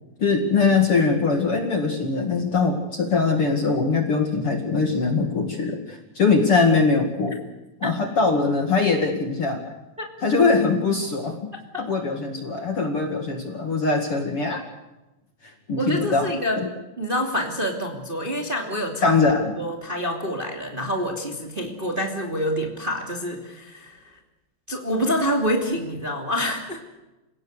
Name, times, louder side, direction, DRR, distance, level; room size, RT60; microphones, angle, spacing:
voice 1, 0.2-7.4 7.8-9.6 10.2-11.4 11.8-14.6 15.7-16.3 16.5-16.7 19.0-19.5, left 4 dB, 40° left, 4 dB, 2.5 m, -22 dB
voice 2, 15.8-16.6 17.0-19.1 19.6-24.2 24.7-26.8, equal, 15° right, 2 dB, 2.3 m, -27 dB
29.0 x 17.5 x 6.6 m, 1.0 s
omnidirectional pair, 4.4 m